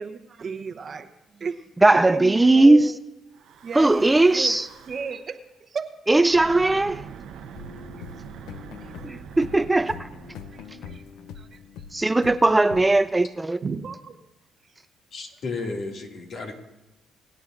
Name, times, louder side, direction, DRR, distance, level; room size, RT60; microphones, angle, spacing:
voice 1, 0.0-1.6 1.9-3.0 3.6-4.5 4.9-5.9 8.0-8.1 10.5-11.0 11.4-11.6 12.0-12.1 13.6-14.2, right 5 dB, 45° right, 0.9 m, -34 dB
voice 2, 1.8-2.9 3.7-4.7 6.1-7.0 9.0-10.1 11.9-13.6, right 2 dB, 15° right, 0.4 m, -18 dB
Breathing / Wind, 3.3-5.3 6.2-11.6, right 7 dB, 80° right, 0.8 m, -44 dB
sound 1, 7.5-13.1, left 6 dB, 90° left, 0.6 m, -43 dB
voice 3, 15.1-16.5, left 3 dB, 65° left, 2.2 m, -33 dB
23.5 x 9.9 x 2.5 m
cardioid pair, 90°, 0 cm